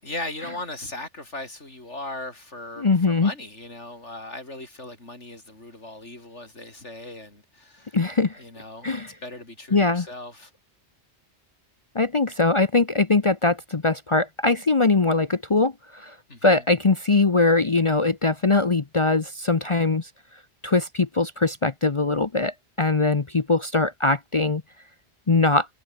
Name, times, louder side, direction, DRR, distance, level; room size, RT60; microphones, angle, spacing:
voice 1, 0.0-8.0 8.4-10.5 16.3-16.6, left 2 dB, 85° left, 6.3 m, -38 dB
voice 2, 2.8-3.3 7.9-8.4 8.8-9.1 9.7-10.1 11.9-16.1 16.4-20.1 20.6-24.6 25.3-25.7, left 3 dB, 30° left, 0.8 m, -21 dB
omnidirectional pair, 1.2 m